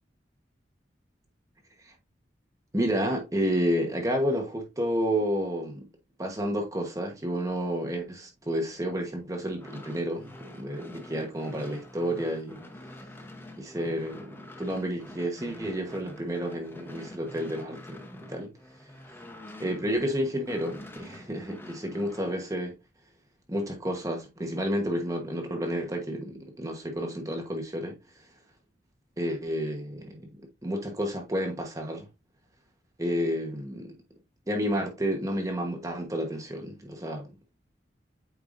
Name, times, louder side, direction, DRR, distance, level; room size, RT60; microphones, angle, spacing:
voice 1, 2.7-5.9 6.2-12.6 13.6-18.5 19.6-22.7 23.5-28.0 29.2-32.1 33.0-33.9 34.5-37.3, equal, 20° right, 1.2 m, -30 dB
sound 1, 9.4-20.1 20.4-22.4, left 1 dB, 10° left, 1.0 m, -46 dB
8.8 x 4.7 x 2.6 m
head